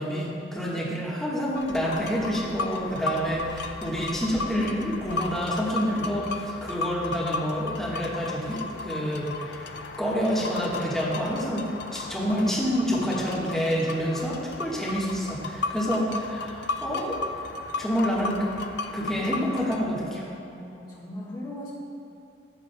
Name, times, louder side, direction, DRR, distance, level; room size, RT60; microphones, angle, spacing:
voice 1, 0.0-9.7 10.0-17.2 17.8-18.5 18.9-20.3, equal, ahead, -7 dB, 1.4 m, -28 dB
sound 1, 1.5-19.8, left 3 dB, 65° left, 0.5 m, -35 dB
voice 2, 20.5-21.7, left 1 dB, 25° left, -7 dB, 1.4 m, -38 dB
12.5 x 7.7 x 2.2 m, 2.8 s
head